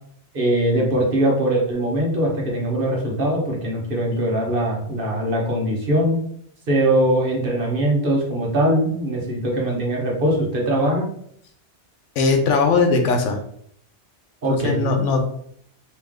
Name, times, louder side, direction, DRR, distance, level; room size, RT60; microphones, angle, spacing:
voice 1, 0.3-6.2 6.7-11.1 14.4-14.8, right 1 dB, 50° right, -1 dB, 1.1 m, -21 dB
voice 2, 12.2-13.4 14.5-15.2, left 4 dB, 85° left, 4 dB, 1.0 m, -19 dB
3.2 x 3.0 x 3.6 m, 0.66 s
omnidirectional pair, 1.2 m